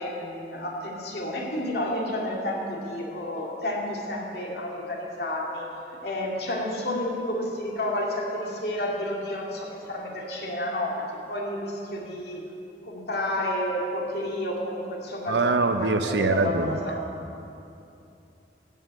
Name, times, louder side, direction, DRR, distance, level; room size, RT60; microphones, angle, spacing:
voice 1, 0.0-5.7 6.0-12.4 12.8-17.0, left 1 dB, 65° left, -2 dB, 2.3 m, -31 dB
voice 2, 15.3-16.8, right 3 dB, 80° right, 7 dB, 0.8 m, -23 dB
15.0 x 5.6 x 8.2 m, 2.8 s
head